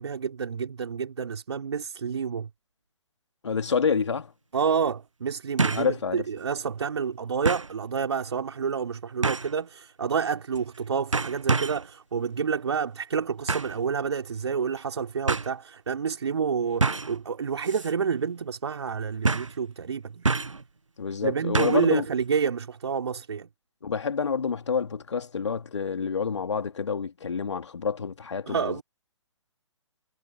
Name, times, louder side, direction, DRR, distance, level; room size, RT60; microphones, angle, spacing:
voice 1, 0.0-2.5 4.5-20.3 21.2-23.5 28.5-28.8, right 6 dB, 60° right, 5.2 m, -29 dB
voice 2, 3.4-4.3 5.7-6.2 21.0-22.0 23.8-28.8, left 6 dB, 65° left, 3.0 m, -28 dB
sound 1, 3.7-3.8 5.6-5.9 6.4-6.5 7.4-7.7 9.2-9.6 10.5-10.8 11.1-11.9 13.5-13.8 14.8-14.9 15.3-15.5 16.8-17.2 17.6-17.9 18.2-18.3 19.2-19.6 20.2-20.6 21.5-21.9 22.2-22.3, right 4 dB, 85° right, 0.9 m, -27 dB
figure-of-eight pair, 130°, 16 cm